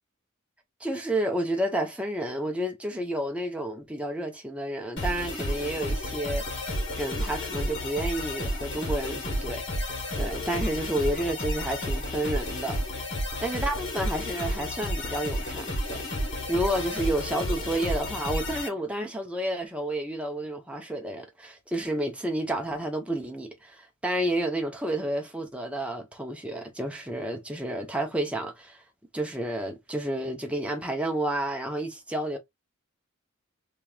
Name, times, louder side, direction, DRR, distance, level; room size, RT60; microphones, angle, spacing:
voice 1, 0.8-6.5 6.9-12.8 13.4-28.8 29.1-32.4, right 1 dB, 5° right, 1.0 m, -30 dB
sound 1, 5.0-18.7, left 1 dB, 55° left, 2.2 m, -31 dB
3.5 x 3.1 x 2.9 m
head